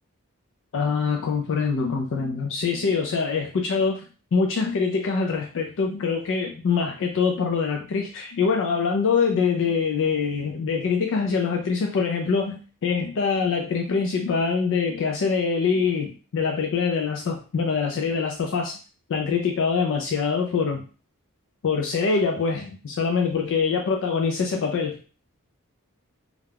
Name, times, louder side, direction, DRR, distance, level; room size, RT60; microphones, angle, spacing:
voice 1, 0.7-4.0 4.3-18.7 19.1-20.9 21.6-25.0, left 5 dB, 60° left, 1 dB, 0.4 m, -24 dB
2.4 x 2.2 x 3.3 m, 0.36 s
head